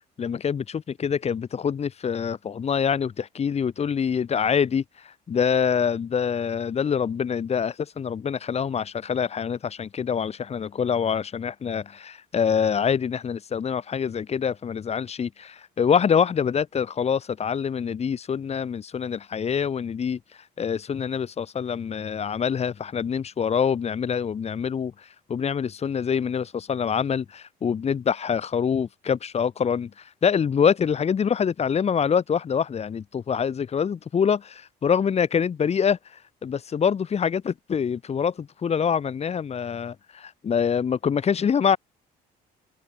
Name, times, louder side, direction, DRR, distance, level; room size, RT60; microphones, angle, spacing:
voice 1, 0.2-36.0 36.4-41.8, left 7 dB, 40° left, 3.7 m, -25 dB
cardioid pair, 110°, 17 cm